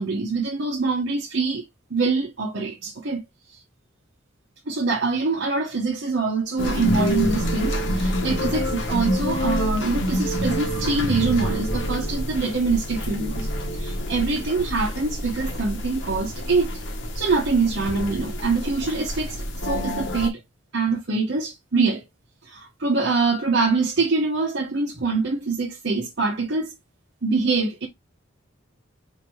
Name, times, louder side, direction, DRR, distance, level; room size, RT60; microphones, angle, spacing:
voice 1, 0.0-1.6 1.9-3.2 4.7-13.5 13.7-16.7 17.1-19.4 19.6-20.4 20.7-22.0 22.5-26.7 27.2-27.9, right 4 dB, 60° right, 0.9 m, -24 dB
sound 1, 6.6-20.3, equal, 65° left, 1.0 m, -27 dB
4.9 x 2.6 x 3.1 m
head